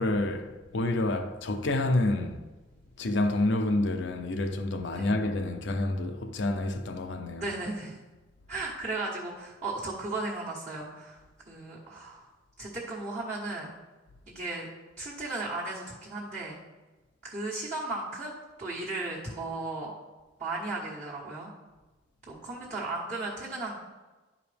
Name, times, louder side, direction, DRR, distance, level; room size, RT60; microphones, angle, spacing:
voice 1, 0.0-2.5 3.0-7.6 8.5-8.7, left 2 dB, 65° left, 0.6 m, -28 dB
voice 2, 7.4-8.0 8.5-11.2 11.4-12.3 12.6-13.7 14.3-14.7 15.0-16.6 17.2-19.9 20.4-21.5 22.3-23.7, right 2 dB, 40° right, 1.4 m, -35 dB
11.0 x 4.9 x 3.4 m
head